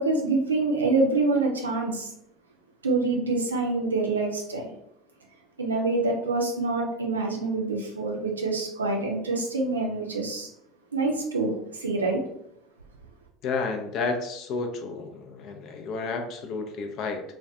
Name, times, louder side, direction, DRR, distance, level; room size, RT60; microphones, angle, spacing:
voice 1, 0.0-2.1 2.8-4.7 5.6-10.5 10.9-12.2, right 3 dB, 90° right, 1 dB, 0.4 m, -26 dB
voice 2, 13.4-17.2, left 4 dB, 55° left, 5 dB, 0.4 m, -31 dB
2.4 x 2.1 x 2.6 m, 0.77 s
hypercardioid pair, 70°, 0 cm